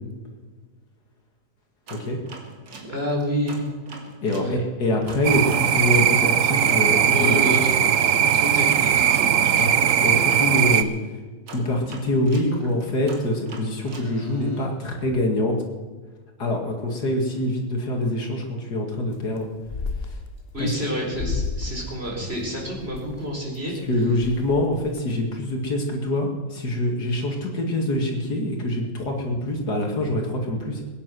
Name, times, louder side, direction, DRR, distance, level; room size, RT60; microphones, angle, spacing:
sound 1, 1.9-4.5 5.1-10.9 11.5-14.7, right 3 dB, 85° right, 2.9 m, -42 dB
voice 1, 2.9-3.6 4.3-4.6 7.1-9.6 20.5-23.7, equal, 35° right, -1 dB, 4.6 m, -29 dB
voice 2, 4.2-7.6 9.4-9.7 10.0-10.9 11.5-15.6 16.4-19.5 20.1-20.2 20.6-20.7 23.9-30.8, left 1 dB, 65° left, 1 dB, 2.8 m, -25 dB
sound 2, 5.2-10.8, right 9 dB, 60° right, 0.9 m, -19 dB
sound 3, 19.1-19.4 19.6-20.7 21.1-21.8 22.2-23.2 23.7-23.8 24.0-25.1, left 4 dB, 40° left, 1.1 m, -31 dB
22.0 x 10.0 x 6.3 m, 1.4 s
omnidirectional pair, 1.9 m